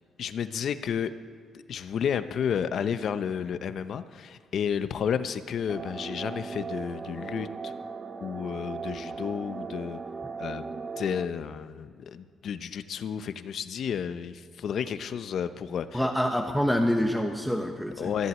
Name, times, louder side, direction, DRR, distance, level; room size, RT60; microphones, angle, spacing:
voice 1, 0.2-1.1 1.5-7.7 8.2-10.0 10.4-16.0 18.0-18.3, left 8 dB, 65° left, 12 dB, 0.7 m, -31 dB
sound 1, 5.7-11.2, right 4 dB, 30° right, 0.6 m, -38 dB
voice 2, 15.9-18.1, equal, ahead, 3 dB, 1.0 m, -26 dB
14.5 x 7.9 x 8.4 m, 2.1 s
cardioid pair, 90°, 0 cm